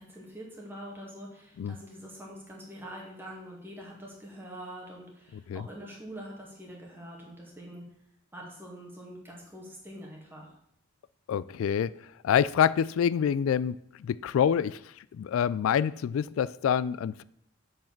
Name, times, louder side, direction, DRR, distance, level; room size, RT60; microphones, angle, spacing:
voice 1, 0.0-7.8 8.3-10.5, equal, 10° right, -2 dB, 2.2 m, -44 dB
voice 2, 11.3-11.9 12.2-14.8 15.1-17.2, left 8 dB, 85° left, 19 dB, 0.3 m, -26 dB
7.6 x 4.7 x 7.2 m, 0.72 s
head